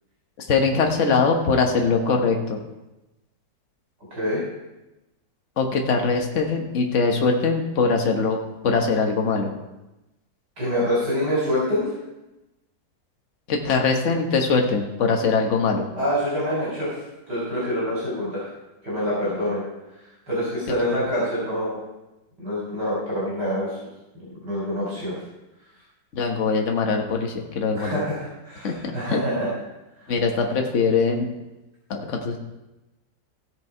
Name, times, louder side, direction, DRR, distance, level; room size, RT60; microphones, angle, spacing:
voice 1, 0.4-2.6 5.6-8.4 8.6-9.5 13.5-15.9 26.1-28.0 28.6-29.2 30.1-31.3 31.9-32.4, left 4 dB, 45° left, 2 dB, 1.5 m, -22 dB
voice 2, 4.1-4.4 10.6-11.8 16.0-16.9 17.3-18.5 18.8-19.6 20.3-21.8 22.4-23.8 24.1-25.2 27.8-29.5, equal, 65° right, -7 dB, 4.5 m, -26 dB
16.0 x 6.8 x 4.5 m, 1.0 s
omnidirectional pair, 1.9 m